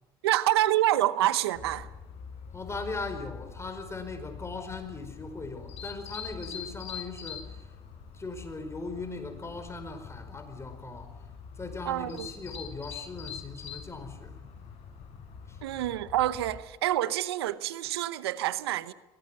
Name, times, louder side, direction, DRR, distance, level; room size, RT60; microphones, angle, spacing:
voice 1, 0.2-1.9 11.9-12.3 15.6-18.9, right 14 dB, 90° right, 0.9 m, -27 dB
sound 1, 1.5-16.6, left 7 dB, 55° left, 6.8 m, -44 dB
voice 2, 2.5-7.7 8.1-11.2 11.6-14.3 15.5-15.6, left 3 dB, 20° left, 4.9 m, -39 dB
22.5 x 17.5 x 7.7 m
hypercardioid pair, 75°, 13 cm